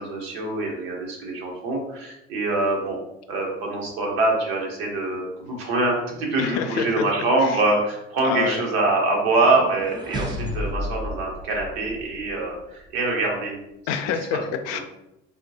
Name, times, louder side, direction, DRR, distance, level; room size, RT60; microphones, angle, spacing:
voice 1, 0.0-3.0 3.3-13.5, right 2 dB, 75° right, -1 dB, 0.9 m, -24 dB
voice 2, 6.4-7.0 7.4-7.6 8.2-8.6 13.9-14.8, left 7 dB, 60° left, 7 dB, 0.4 m, -27 dB
sound 1, 9.3-12.4, left 1 dB, 15° right, 0.6 m, -32 dB
3.5 x 2.2 x 2.7 m, 0.87 s
hypercardioid pair, 60°, 30 cm